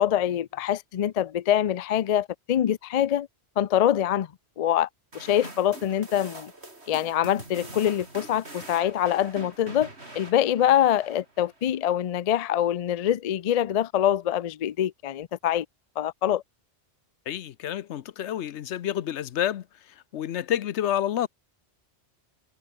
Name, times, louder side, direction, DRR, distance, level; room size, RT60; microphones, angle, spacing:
voice 1, 0.0-3.3 3.6-4.3 4.6-4.9 5.1-6.5 6.9-9.9 10.1-15.7 16.0-16.4, left 11 dB, 55° left, 0.4 m, -24 dB
sound 1, 5.1-11.7, right 2 dB, 70° right, 5.2 m, -44 dB
voice 2, 17.3-21.3, left 11 dB, 80° left, 1.0 m, -29 dB
omnidirectional pair, 1.2 m